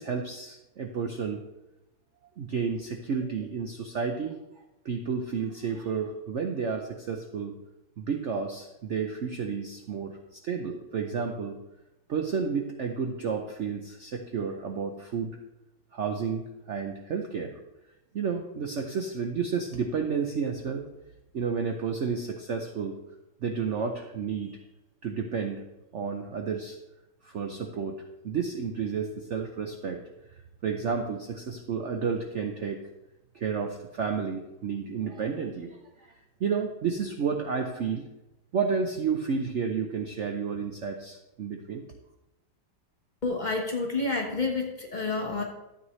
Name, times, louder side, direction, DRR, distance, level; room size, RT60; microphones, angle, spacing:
voice 1, 0.0-1.4 2.4-4.4 4.8-7.6 8.0-11.6 12.1-15.4 15.9-17.6 18.1-20.9 21.3-23.0 23.4-24.6 25.0-25.6 25.9-26.8 27.2-30.0 30.6-32.8 33.3-36.1 36.4-38.0 38.5-41.8, right 6 dB, 80° right, 4 dB, 0.6 m, -31 dB
voice 2, 43.2-45.4, left 3 dB, 30° left, 0 dB, 1.0 m, -29 dB
12.5 x 8.3 x 3.2 m, 0.97 s
omnidirectional pair, 2.1 m